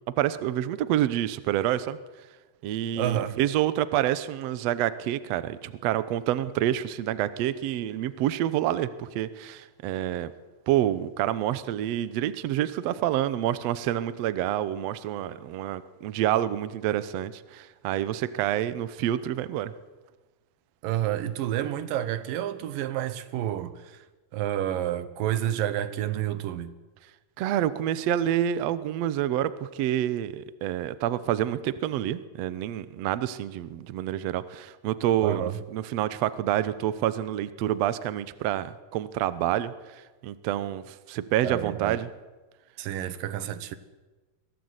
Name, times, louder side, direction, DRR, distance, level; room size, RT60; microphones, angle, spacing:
voice 1, 0.2-2.0 2.6-10.3 10.7-19.7 27.4-39.7 40.2-42.1, right 12 dB, 70° right, 1.6 m, -28 dB
voice 2, 3.0-3.4 20.8-24.0 24.3-26.8 35.2-35.6 41.4-42.0 42.8-43.8, right 11 dB, 85° right, 2.7 m, -29 dB
23.0 x 16.5 x 8.1 m
omnidirectional pair, 3.9 m